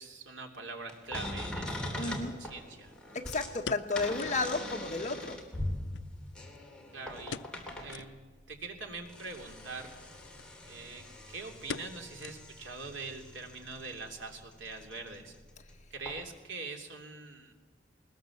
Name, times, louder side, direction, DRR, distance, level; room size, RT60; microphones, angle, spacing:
voice 1, 0.0-2.9 6.9-7.4 7.8-8.2 8.5-10.0 10.7-15.3 15.9-17.5, right 3 dB, 90° right, 4 dB, 3.0 m, -43 dB
sound 1, 0.9-8.1 8.8-15.7 16.0-16.2, left 1 dB, 5° left, 3.2 m, -42 dB
sound 2, 1.1-1.2 3.2-4.5 4.8-4.9 5.2-5.3 5.9-6.8 7.2-7.6 7.9-8.2 8.7-8.8 9.7-10.0 10.4-10.5 10.8-11.1 11.7-12.7 13.0-13.1 13.7-14.1 14.3-14.4, left 5 dB, 75° left, 0.6 m, -43 dB
voice 2, 2.0-2.3 3.1-5.4, left 3 dB, 40° left, 4 dB, 1.5 m, -32 dB
20.5 x 20.5 x 7.3 m, 1.2 s
head